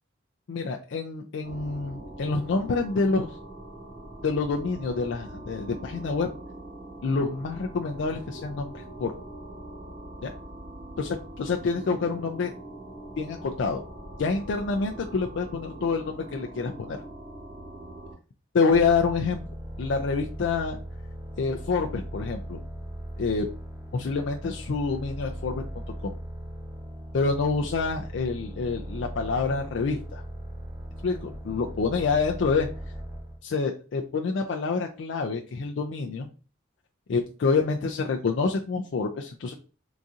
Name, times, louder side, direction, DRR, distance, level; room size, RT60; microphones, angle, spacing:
voice 1, 0.5-3.4 4.2-6.3 7.0-9.1 10.2-10.3 11.0-12.5 13.2-13.8 14.2-17.0 18.5-19.4 19.8-20.8 21.4-22.6 23.2-23.5 23.9-25.6 26.0-26.1 27.1-30.2 31.0-32.7 33.4-36.3 37.1-39.6, left 4 dB, 75° left, 2 dB, 0.4 m, -27 dB
Ghost - Supercollider, 1.4-18.1, right 1 dB, 50° right, 1.3 m, -42 dB
sound 1, 18.7-33.4, equal, 15° right, 0.8 m, -38 dB
3.9 x 2.6 x 2.4 m, 0.35 s
head